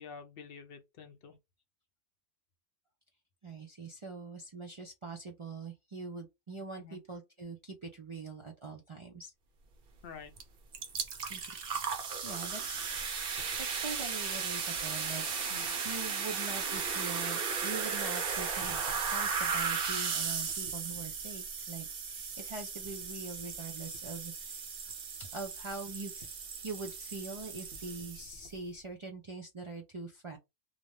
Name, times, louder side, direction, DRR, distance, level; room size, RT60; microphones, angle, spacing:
voice 1, 0.0-1.4 6.8-7.0 10.0-10.4 15.5-15.8, left 6 dB, 65° left, 0.7 m, -48 dB
voice 2, 3.4-9.3 11.3-11.6 12.2-12.9 13.6-15.2 15.8-18.8 19.1-24.7 25.3-26.4 26.6-30.4, right 4 dB, 45° right, 0.4 m, -43 dB
sound 1, 10.4-10.5 10.7-28.5, right 5 dB, 60° right, 0.8 m, -36 dB
2.5 x 2.1 x 3.1 m
omnidirectional pair, 1.1 m